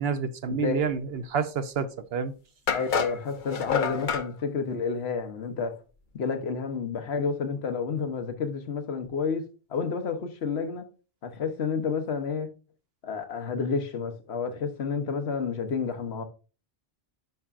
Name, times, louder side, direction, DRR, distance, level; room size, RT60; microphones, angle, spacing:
voice 1, 0.0-2.3, right 6 dB, 75° right, 1.0 m, -29 dB
voice 2, 0.5-0.9 2.7-5.8 6.1-10.9 11.2-12.5 13.0-16.2, left 5 dB, 85° left, 1.2 m, -30 dB
sound 1, 1.8-1.9 2.7-4.3, left 6 dB, 55° left, 0.8 m, -28 dB
9.2 x 5.8 x 2.5 m
omnidirectional pair, 1.1 m